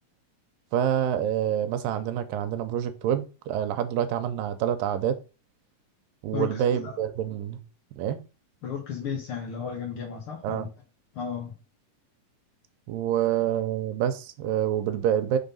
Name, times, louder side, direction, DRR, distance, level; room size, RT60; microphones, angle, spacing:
voice 1, 0.7-5.2 6.2-7.6 8.0-8.2 10.4-10.7 12.9-15.4, right 10 dB, 85° right, 2.3 m, -27 dB
voice 2, 6.3-7.0 8.6-10.7 11.1-11.5, left 7 dB, 80° left, 1.2 m, -34 dB
5.6 x 3.6 x 5.4 m
omnidirectional pair, 3.9 m